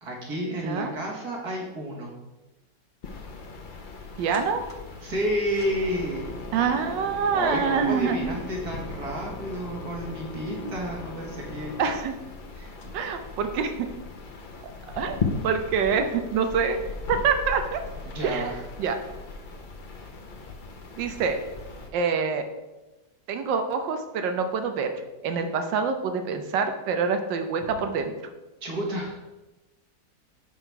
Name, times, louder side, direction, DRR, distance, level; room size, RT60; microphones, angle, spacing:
voice 1, 0.0-2.1 5.0-6.3 7.3-11.7 12.6-12.7 18.0-18.5 28.6-29.2, equal, 60° right, -2 dB, 2.0 m, -31 dB
sound 1, 3.0-21.9, left 4 dB, 50° left, 0.5 m, -38 dB
voice 2, 4.2-4.6 6.5-8.3 10.6-10.8 11.8-12.1 12.9-13.9 14.9-15.2 15.4-16.8 17.1-17.8 18.2-18.5 18.8-18.9 21.0-21.4 21.9-22.4 23.3-24.9 25.2-28.1, right 6 dB, 80° right, 7 dB, 1.5 m, -26 dB
5.8 x 5.8 x 4.6 m, 1.1 s
omnidirectional pair, 2.0 m